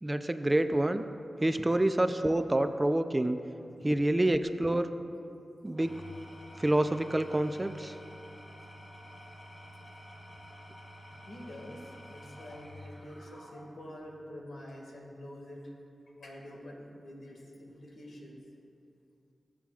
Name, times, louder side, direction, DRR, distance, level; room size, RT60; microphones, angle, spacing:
voice 1, 0.0-1.0 1.4-3.4 3.8-4.9 5.6-5.9 6.6-7.9, right 1 dB, 20° right, 9 dB, 0.4 m, -27 dB
Engine / Tools, 5.7-14.0, equal, 50° left, 2.4 m, -50 dB
voice 2, 11.3-15.7 16.2-18.4, left 1 dB, 85° left, -1 dB, 1.9 m, -47 dB
18.0 x 7.5 x 2.4 m, 2.5 s
cardioid pair, 60°, 0 cm